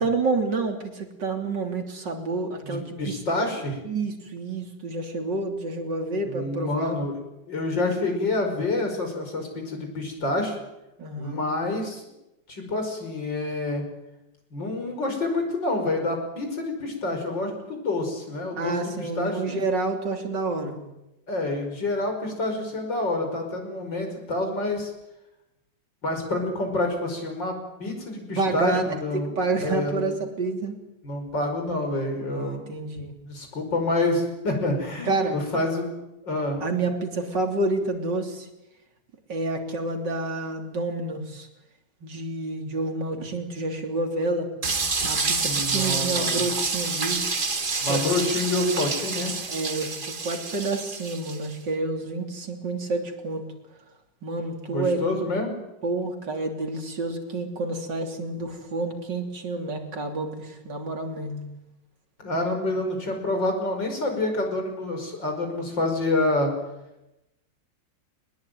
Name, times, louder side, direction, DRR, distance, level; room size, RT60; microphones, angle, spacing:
voice 1, 0.0-3.2 3.8-7.0 11.0-11.4 18.5-20.8 28.4-28.8 29.1-30.8 32.2-33.1 35.1-35.4 36.6-38.5 39.3-41.5 42.0-44.5 45.0-47.4 47.9-48.0 49.5-53.4 54.2-55.1 55.8-61.4, right 3 dB, 75° right, 4 dB, 3.8 m, -29 dB
voice 2, 2.6-3.8 6.2-7.2 7.5-10.6 11.1-12.0 12.5-13.8 14.5-19.6 21.3-24.9 26.0-30.2 31.0-32.6 33.3-35.9 36.2-36.6 45.4-46.5 47.8-49.4 54.7-55.6 62.2-66.5, left 2 dB, 90° left, 4 dB, 6.0 m, -27 dB
sound 1, 44.6-51.5, right 4 dB, 30° right, 1.6 m, -28 dB
22.5 x 20.5 x 9.3 m, 0.93 s
omnidirectional pair, 1.9 m